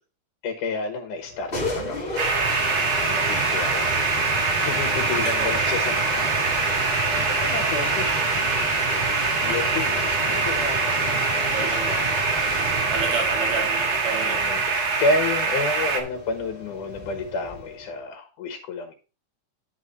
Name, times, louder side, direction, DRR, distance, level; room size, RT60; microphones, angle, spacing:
voice 1, 0.4-8.5 8.9-12.0 12.7-13.0 14.1-14.6 15.0-18.9, left 3 dB, 90° left, 3 dB, 2.8 m, -31 dB
sound 1, 1.2-17.9, left 1 dB, 20° left, 2.2 m, -32 dB
sound 2, 2.2-16.0, right 4 dB, 45° right, 1.4 m, -24 dB
voice 2, 11.5-12.0 12.9-14.5, right 4 dB, 65° right, 0 dB, 3.0 m, -30 dB
10.0 x 6.3 x 3.9 m, 0.32 s
omnidirectional pair, 3.5 m